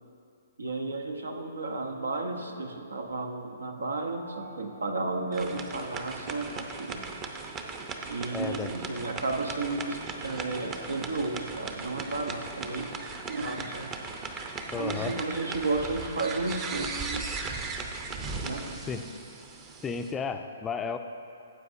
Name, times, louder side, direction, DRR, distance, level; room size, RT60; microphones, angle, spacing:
voice 1, 0.6-7.0 8.1-12.9 13.3-13.9 14.7-17.3 18.4-18.7, right 3 dB, 85° right, 4 dB, 0.9 m, -33 dB
sound 1, 1.9-16.5 17.9-19.0, right 1 dB, 60° right, 2.3 m, -52 dB
sound 2, 5.3-20.1, right 4 dB, 25° right, 0.6 m, -38 dB
voice 2, 8.3-8.7 14.7-15.2 18.7-19.1 19.8-21.0, left 5 dB, 15° left, 7 dB, 0.4 m, -33 dB
14.5 x 7.8 x 2.7 m, 2.5 s
hypercardioid pair, 135°, 0 cm